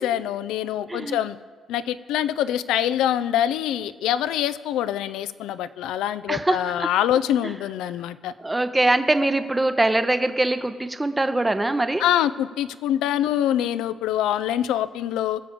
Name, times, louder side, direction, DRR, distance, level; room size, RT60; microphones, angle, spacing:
voice 1, 0.0-1.4 1.7-8.3 12.0-15.4, left 11 dB, 90° left, 14 dB, 0.4 m, -24 dB
voice 2, 6.3-6.9 8.4-12.0, right 2 dB, 15° right, 10 dB, 0.7 m, -22 dB
18.0 x 6.9 x 5.1 m, 1.5 s
cardioid pair, 90°, 0 cm